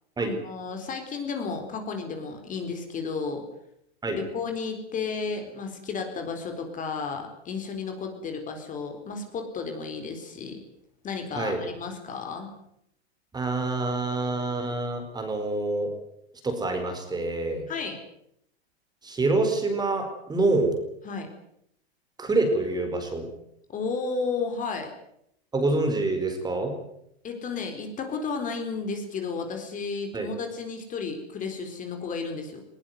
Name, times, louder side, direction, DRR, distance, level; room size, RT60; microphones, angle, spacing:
voice 1, 0.2-3.4 4.1-10.6 11.0-12.5 17.7-18.0 21.0-21.3 23.7-24.9 27.2-32.6, left 4 dB, 25° left, 5 dB, 4.3 m, -33 dB
voice 2, 13.3-15.9 16.4-17.6 19.0-20.7 22.2-23.3 25.5-26.7 30.1-30.3, right 2 dB, 10° right, 6 dB, 4.5 m, -26 dB
20.0 x 19.0 x 9.4 m, 0.74 s
hypercardioid pair, 130°, 33 cm